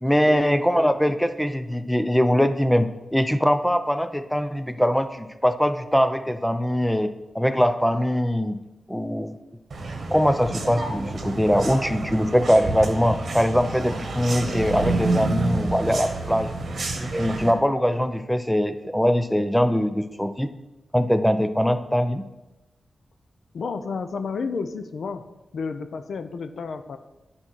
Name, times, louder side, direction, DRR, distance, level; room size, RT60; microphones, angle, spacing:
voice 1, 0.0-7.1 7.3-8.6 8.9-9.4 10.1-16.5 17.0-20.5 20.9-22.2, equal, 5° left, 9 dB, 0.5 m, -22 dB
sound 1, 9.7-17.5, right 2 dB, 60° right, 1.3 m, -29 dB
voice 2, 23.5-25.2 25.5-27.0, left 5 dB, 80° left, 9 dB, 0.6 m, -31 dB
10.0 x 4.3 x 6.2 m, 1.0 s
wide cardioid pair, 105°, 0 cm